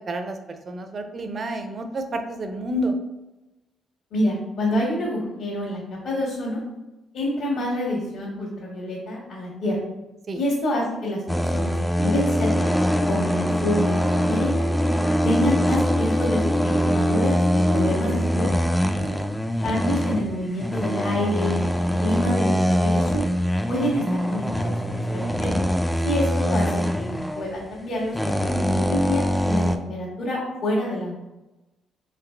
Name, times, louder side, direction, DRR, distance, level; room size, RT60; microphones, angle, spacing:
voice 1, 0.1-2.9 10.3-10.4 18.7-19.2, right 1 dB, 45° right, 6 dB, 0.6 m, -30 dB
voice 2, 4.1-6.6 7.1-9.8 10.3-12.7 13.1-14.6 15.2-18.5 19.6-23.2 23.7-24.0 24.3-25.5 26.0-28.1 28.4-31.2, left 1 dB, 75° left, -8 dB, 1.5 m, -27 dB
sound 1, 11.3-29.8, equal, 5° left, 0.4 m, -23 dB
4.1 x 3.7 x 3.3 m, 1.0 s
cardioid pair, 90°, 0 cm